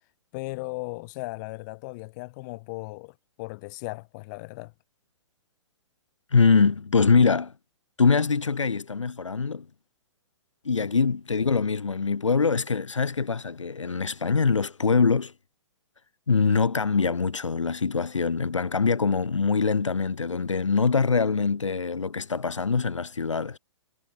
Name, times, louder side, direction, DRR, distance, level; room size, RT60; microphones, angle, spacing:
voice 1, 0.3-4.7, left 25 dB, 40° left, 3.3 m, -37 dB
voice 2, 6.3-7.5 8.0-9.7 10.6-15.3 16.3-23.6, left 5 dB, 80° left, 1.4 m, -23 dB
figure-of-eight pair, 120°, 16 cm